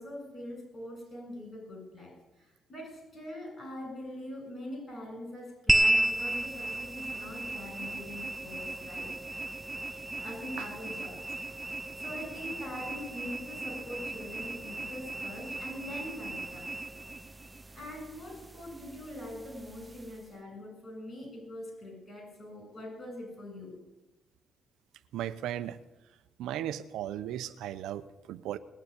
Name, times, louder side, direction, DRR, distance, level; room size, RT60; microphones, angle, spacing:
voice 1, 0.0-9.4 9.9-11.6 11.9-16.9 17.7-23.7, left 1 dB, 40° left, 1 dB, 7.6 m, -43 dB
sound 1, 5.7-20.3, right 1 dB, 20° right, 0.7 m, -34 dB
voice 2, 25.1-25.8 26.4-28.6, right 11 dB, 90° right, 11 dB, 0.8 m, -36 dB
20.0 x 7.1 x 9.7 m, 1.1 s
cardioid pair, 90°, 0 cm